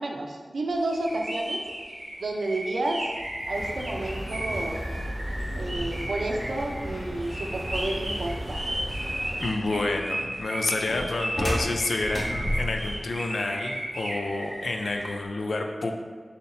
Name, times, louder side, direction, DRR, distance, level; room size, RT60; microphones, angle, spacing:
voice 1, 0.0-1.6 2.2-3.1 3.5-4.8 5.5-8.7, right 2 dB, 90° right, 1 dB, 0.5 m, -30 dB
sound 1, 0.9-15.1, right 1 dB, 45° right, 1.0 m, -35 dB
sound 2, 3.2-13.1, equal, 25° left, 1.4 m, -36 dB
sound 3, 3.5-9.5, equal, 5° left, 1.3 m, -35 dB
voice 2, 9.4-15.9, left 2 dB, 85° left, 3 dB, 0.4 m, -29 dB
3.8 x 2.8 x 4.2 m, 1.5 s
wide cardioid pair, 60°, 0 cm